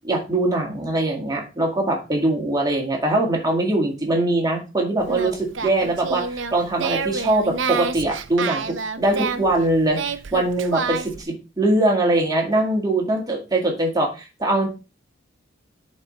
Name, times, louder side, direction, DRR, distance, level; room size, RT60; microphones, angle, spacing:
voice 1, 0.0-10.0 10.3-14.7, right 2 dB, 20° right, 0 dB, 2.0 m, -22 dB
Singing, 5.0-11.2, right 5 dB, 75° right, 0.7 m, -29 dB
11.0 x 4.3 x 3.2 m, 0.30 s
head